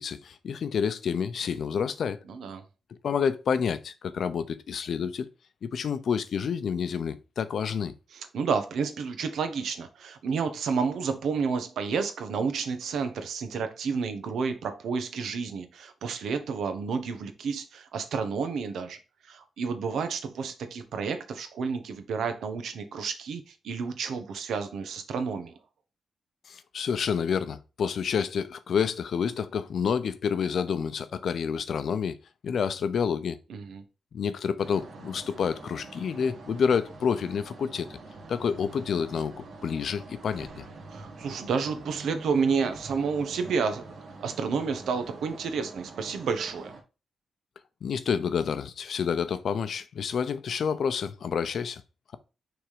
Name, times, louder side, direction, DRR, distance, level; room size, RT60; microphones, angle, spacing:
voice 1, 0.0-2.2 3.0-5.3 5.6-7.9 26.5-32.2 32.4-33.4 34.1-38.0 38.3-40.6 47.8-51.8, left 6 dB, 55° left, 0.6 m, -29 dB
voice 2, 2.3-2.6 8.1-19.0 19.3-25.5 33.5-33.8 40.9-43.9 44.2-46.7, right 5 dB, 90° right, 1.1 m, -30 dB
sound 1, 34.6-46.8, right 3 dB, 60° right, 1.9 m, -45 dB
6.1 x 3.6 x 4.9 m
wide cardioid pair, 175°, 0 cm